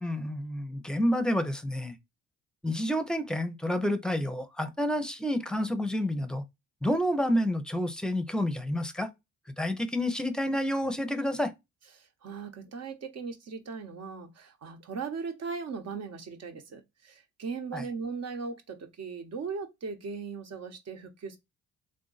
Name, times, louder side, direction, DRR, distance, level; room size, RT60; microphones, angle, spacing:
voice 1, 0.0-2.0 2.6-6.4 6.8-9.1 9.6-11.5 17.7-17.9, equal, 5° left, 0.7 m, -29 dB
voice 2, 12.0-21.4, right 5 dB, 60° right, 1.1 m, -38 dB
3.7 x 2.5 x 4.0 m
cardioid pair, 90°, 30 cm